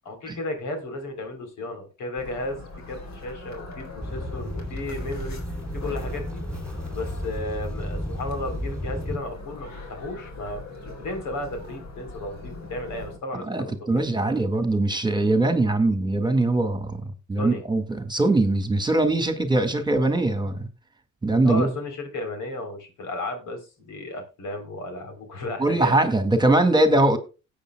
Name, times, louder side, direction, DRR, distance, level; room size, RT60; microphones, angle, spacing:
voice 1, 0.1-2.6 2.9-5.4 5.7-6.4 6.9-14.4 17.4-17.6 21.4-26.0, left 2 dB, 80° left, 3.7 m, -34 dB
sound 1, 2.2-13.2, left 2 dB, 65° left, 4.2 m, -40 dB
sound 2, 4.0-9.2, equal, 5° left, 3.8 m, -33 dB
voice 2, 13.3-17.0 17.3-20.7 21.2-21.7 25.6-27.2, right 2 dB, 15° right, 1.9 m, -22 dB
17.5 x 8.4 x 2.3 m
cardioid pair, 90°, 30 cm